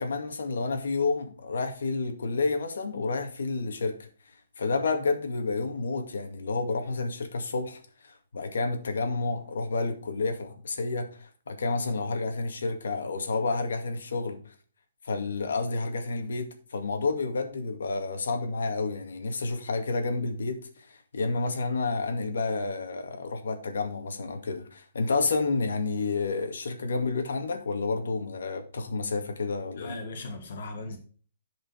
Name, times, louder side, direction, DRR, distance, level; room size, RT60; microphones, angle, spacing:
voice 1, 0.0-4.0 4.6-7.8 8.3-14.4 15.0-20.6 20.9-30.0, left 3 dB, 80° left, 2.1 m, -30 dB
voice 2, 29.8-31.0, left 2 dB, 45° left, 1.7 m, -38 dB
10.5 x 5.5 x 4.7 m
hypercardioid pair, 175°, 0 cm